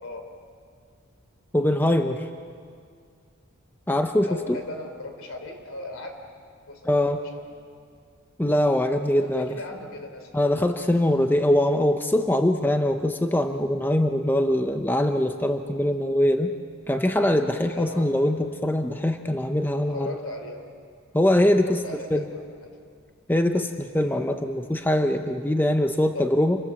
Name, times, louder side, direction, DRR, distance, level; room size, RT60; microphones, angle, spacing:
voice 1, 1.5-2.3 3.9-4.6 6.9-7.2 8.4-9.6 10.3-16.5 16.9-20.2 21.1-21.8 22.1-22.3 23.3-26.6, left 1 dB, 10° left, 6 dB, 0.7 m, -22 dB
voice 2, 4.2-6.2 6.6-7.4 9.1-10.3 15.9-16.0 17.7-18.1 19.9-20.7 21.6-22.8 26.1-26.4, left 2 dB, 70° left, 5 dB, 3.4 m, -38 dB
28.0 x 23.0 x 7.0 m, 2.2 s
head